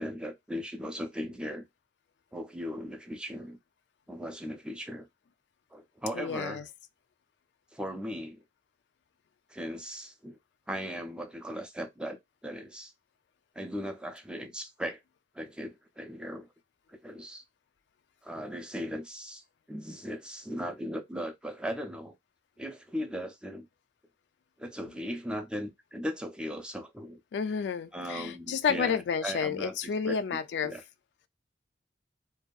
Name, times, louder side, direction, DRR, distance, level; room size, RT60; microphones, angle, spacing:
voice 1, 0.0-1.6 2.3-3.6 4.1-5.1 5.7-6.6 7.7-8.4 9.5-10.4 10.7-12.9 13.6-15.0 15.3-16.5 16.9-17.4 18.2-22.1 22.6-23.7 24.6-27.2 27.9-29.8 30.1-30.8, equal, 5° right, 0.4 m, -38 dB
voice 2, 6.1-6.6 27.3-30.7, left 6 dB, 70° left, 0.3 m, -30 dB
2.6 x 2.3 x 2.2 m
head